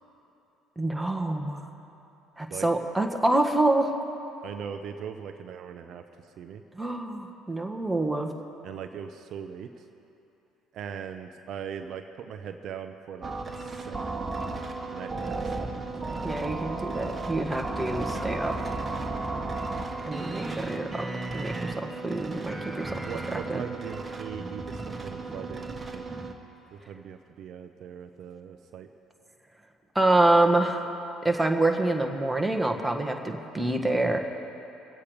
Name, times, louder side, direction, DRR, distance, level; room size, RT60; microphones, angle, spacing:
voice 1, 0.8-1.6 2.4-3.9 6.7-8.3 16.2-18.5 20.1-21.0 21.3-23.0 23.5-23.6 29.9-30.9 31.2-34.2, right 2 dB, 10° right, 3 dB, 1.6 m, -26 dB
voice 2, 4.4-6.6 8.6-9.8 10.7-14.1 14.9-15.8 23.0-26.1 26.7-28.9, right 7 dB, 60° right, 7 dB, 0.7 m, -40 dB
sound 1, 13.2-26.3, right 3 dB, 25° right, 1.7 m, -34 dB
25.0 x 8.3 x 5.1 m, 2.9 s
supercardioid pair, 70°, 0 cm